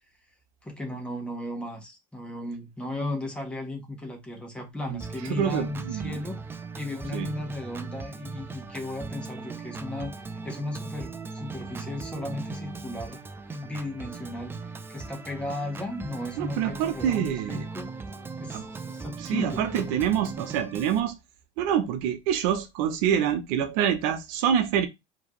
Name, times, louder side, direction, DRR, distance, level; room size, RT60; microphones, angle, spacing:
voice 1, 0.6-6.4 6.8-13.2 13.5-17.9 18.4-19.7, left 1 dB, 5° left, 1.5 m, -35 dB
Organ, 5.0-21.0, right 4 dB, 15° right, 0.4 m, -39 dB
voice 2, 5.3-6.2 7.1-7.3 16.4-17.6 18.5-18.6 19.2-21.2 21.6-24.9, right 9 dB, 70° right, 0.9 m, -26 dB
4.7 x 3.1 x 3.1 m
supercardioid pair, 125°, 17 cm